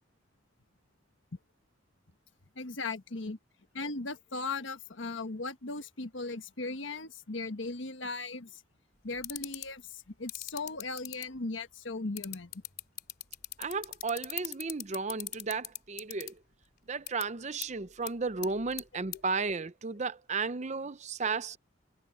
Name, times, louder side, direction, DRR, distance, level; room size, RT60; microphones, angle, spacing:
voice 1, 2.6-3.4 3.7-8.5 9.0-9.8 10.2-12.5, left 3 dB, 75° left, 1.4 m, -37 dB
sound 1, 9.2-9.7 10.3-11.2 12.2-16.3 17.1-17.2 17.6-17.7 18.1-18.2 18.4-18.8 19.1-19.2, left 14 dB, 50° left, 3.3 m, -37 dB
voice 2, 13.6-16.3 16.9-21.6, right 4 dB, 35° right, 0.7 m, -34 dB
head